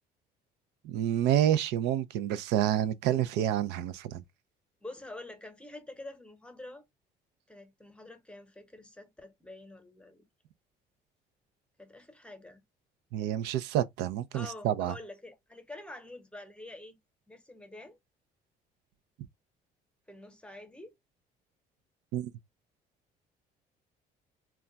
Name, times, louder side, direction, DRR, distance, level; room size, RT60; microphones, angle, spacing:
voice 1, 0.8-4.2 13.1-14.9 22.1-22.3, right 11 dB, 90° right, 0.4 m, -28 dB
voice 2, 4.8-6.8 7.5-10.2 11.8-12.6 14.3-17.0 17.3-18.0 20.1-20.9, left 2 dB, 5° left, 0.8 m, -47 dB
2.3 x 2.2 x 3.8 m
cardioid pair, 110°, 17 cm